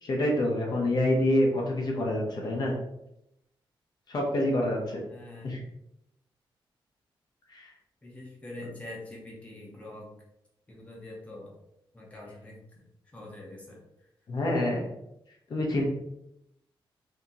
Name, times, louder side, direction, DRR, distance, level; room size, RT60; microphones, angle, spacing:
voice 1, 0.0-2.8 4.1-5.0 5.4-5.6 7.5-7.7 14.3-14.8 15.5-15.8, left 1 dB, 50° left, -2 dB, 0.8 m, -27 dB
voice 2, 5.1-5.6 8.0-10.1 10.7-11.5 11.9-12.8 13.1-13.8, left 1 dB, 15° left, -3 dB, 0.8 m, -44 dB
2.8 x 2.8 x 3.7 m, 0.82 s
wide cardioid pair, 170°, 9 cm